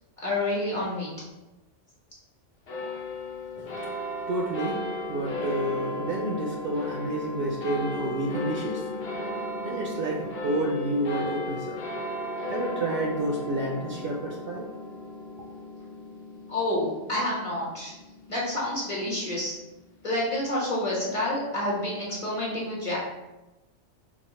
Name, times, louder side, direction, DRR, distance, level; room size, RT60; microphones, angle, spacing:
voice 1, 0.2-1.1 16.5-17.9 18.3-19.5 20.0-23.0, left 1 dB, 30° left, -6 dB, 1.1 m, -28 dB
sound 1, 2.7-19.4, left 1 dB, 60° left, 1.0 m, -35 dB
voice 2, 3.6-4.8 5.1-8.9 9.6-11.8 12.1-12.2 12.5-14.7, right 1 dB, 60° right, -1 dB, 0.6 m, -30 dB
4.0 x 2.3 x 4.2 m, 1.0 s
omnidirectional pair, 1.2 m